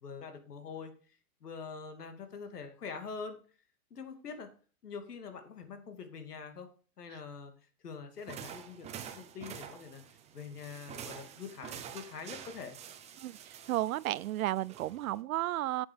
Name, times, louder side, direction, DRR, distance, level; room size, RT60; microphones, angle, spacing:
voice 1, 0.0-0.9 1.4-3.4 3.9-4.5 4.8-6.7 7.0-7.5 7.8-10.0 10.3-12.8, left 5 dB, 85° left, 2.6 m, -44 dB
sound 1, 8.2-15.2, right 8 dB, 15° right, 0.8 m, -47 dB
voice 2, 13.2-15.9, right 15 dB, 65° right, 0.5 m, -33 dB
8.8 x 7.6 x 5.2 m
hypercardioid pair, 140°, 46 cm